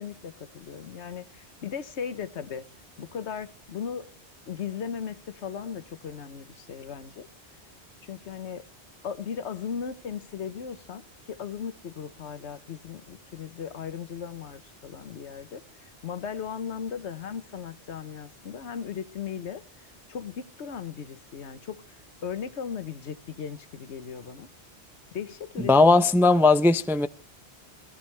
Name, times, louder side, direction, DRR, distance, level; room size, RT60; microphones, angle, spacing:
voice 1, 0.0-2.6 3.0-4.1 4.5-7.3 8.0-8.6 9.0-11.0 11.3-15.6 16.0-19.6 20.1-21.8 22.2-24.5 25.1-26.0, left 7 dB, 85° left, 1.2 m, -37 dB
voice 2, 25.6-27.1, left 3 dB, 5° right, 0.3 m, -18 dB
19.0 x 15.0 x 3.3 m
omnidirectional pair, 1.1 m